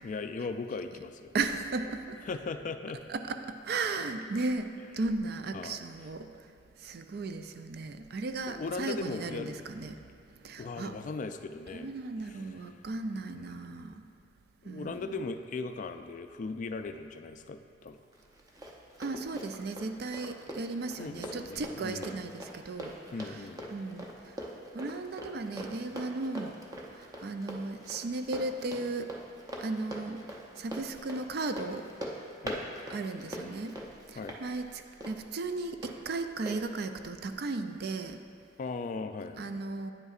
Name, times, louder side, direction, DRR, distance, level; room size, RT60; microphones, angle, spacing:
voice 1, 0.0-1.3 2.2-3.0 5.5-5.8 8.5-9.6 10.6-11.9 12.2-12.6 13.3-14.0 14.6-18.0 21.0-22.2 23.1-23.7 32.4-32.6 34.2-34.4 38.6-39.6, left 4 dB, 45° left, 8 dB, 0.3 m, -38 dB
voice 2, 1.3-2.2 3.1-6.5 6.8-10.0 10.4-11.0 11.7-14.0 14.6-15.1 19.0-23.0 23.3-23.4 23.7-24.4 24.7-26.6 26.9-29.1 29.6-30.2 30.6-31.9 32.9-33.7 34.1-38.2 39.4-39.9, right 3 dB, 60° right, 8 dB, 0.4 m, -36 dB
Run, 18.1-35.9 36.5-36.6, right 1 dB, 20° right, 0.6 m, -43 dB
9.4 x 8.0 x 2.5 m, 2.4 s
head